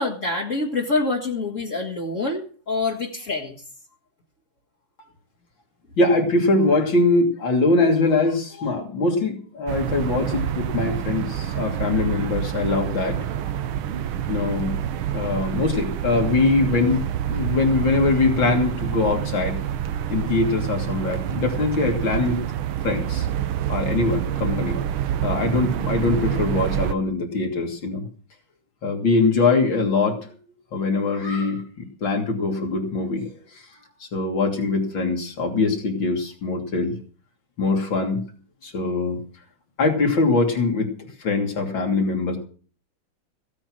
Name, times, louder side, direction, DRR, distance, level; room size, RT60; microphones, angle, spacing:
voice 1, 0.0-3.6, left 3 dB, 40° left, -3 dB, 2.3 m, -26 dB
voice 2, 6.0-13.2 14.3-14.8 15.1-17.0 17.3-19.6 20.1-22.4 22.8-23.3 23.7-24.8 25.2-28.1 28.8-30.2 30.7-31.6 32.0-33.2 34.1-37.0 37.6-38.2 38.6-39.2 39.8-40.9 41.2-42.4, left 3 dB, 70° left, 2 dB, 3.6 m, -22 dB
sound 1, 9.7-26.9, right 10 dB, 85° right, 1.7 m, -27 dB
16.0 x 8.7 x 6.3 m, 0.42 s
omnidirectional pair, 2.2 m